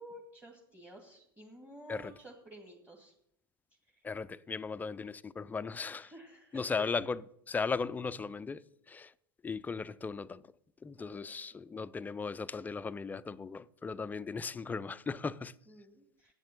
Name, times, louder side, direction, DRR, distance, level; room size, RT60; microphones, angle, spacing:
voice 1, 0.0-3.1 3.9-4.0 5.9-7.0 11.0-11.3 14.1-14.3 15.7-16.3, right 1 dB, 10° right, 1.9 m, -52 dB
voice 2, 4.0-6.1 6.5-8.6 8.9-9.1 9.4-10.4 10.8-15.5, left 5 dB, 15° left, 0.4 m, -37 dB
8.3 x 7.4 x 7.2 m
hypercardioid pair, 95°, 12 cm